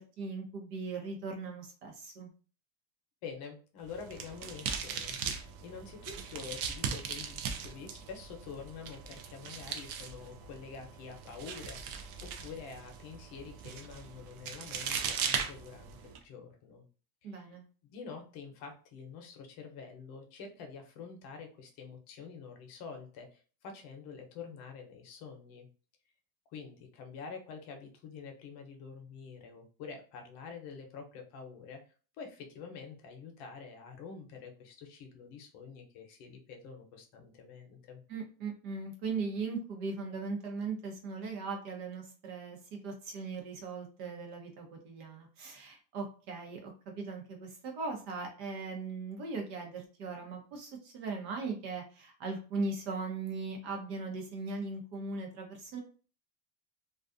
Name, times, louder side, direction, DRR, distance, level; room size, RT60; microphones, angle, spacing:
voice 1, 0.0-2.3 17.2-17.6 38.1-55.8, right 4 dB, 65° right, 2 dB, 0.9 m, -39 dB
voice 2, 3.2-16.8 17.2-17.6 17.9-25.7 26.5-38.0, left 5 dB, 50° left, 4 dB, 0.7 m, -47 dB
sound 1, 3.8-16.2, right 7 dB, 45° right, 0.5 m, -39 dB
2.4 x 2.3 x 2.5 m, 0.38 s
supercardioid pair, 125°, 47 cm